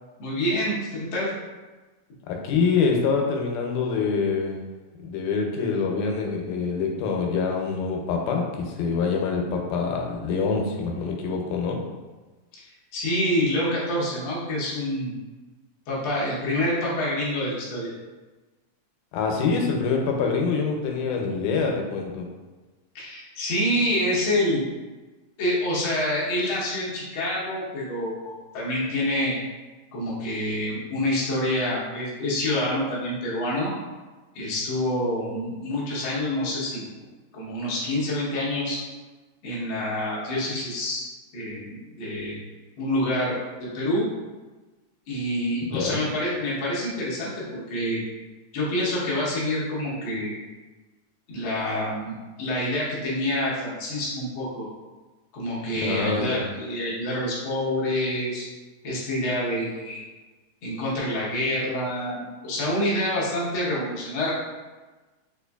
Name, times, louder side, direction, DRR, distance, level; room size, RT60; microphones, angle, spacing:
voice 1, 0.2-1.3 12.5-12.6 12.9-15.1 15.9-17.9 22.9-24.6 25.4-29.3 29.9-33.7 34.3-36.8 37.3-38.8 39.4-41.0 41.3-42.4 42.8-44.1 45.1-48.0 48.5-50.4 51.3-54.7 55.3-58.4 58.8-60.0 60.6-64.3, left 1 dB, 65° left, -7 dB, 1.2 m, -27 dB
voice 2, 2.3-4.6 5.0-11.8 19.1-22.3 45.7-46.0 55.8-56.4, left 5 dB, 90° left, 1 dB, 2.0 m, -25 dB
4.9 x 2.4 x 2.3 m, 1.2 s
omnidirectional pair, 3.5 m